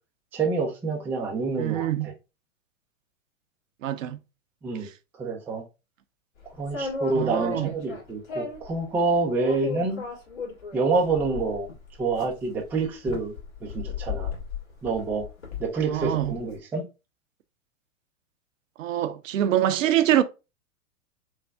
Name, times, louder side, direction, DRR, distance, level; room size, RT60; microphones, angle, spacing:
voice 1, 0.3-2.1 4.6-4.9 5.2-5.6 6.6-10.0 10.7-11.7 12.0-13.3 13.6-14.3 14.8-15.2 15.6-16.8, right 3 dB, 5° right, 0.3 m, -27 dB
voice 2, 1.6-2.1 3.8-4.2 7.2-7.7 15.9-16.3 18.8-20.2, right 12 dB, 75° right, 0.6 m, -24 dB
sound 1, 6.6-8.7 9.4-16.4, left 4 dB, 60° left, 2.0 m, -35 dB
3.5 x 2.3 x 3.3 m
hypercardioid pair, 110°, 39 cm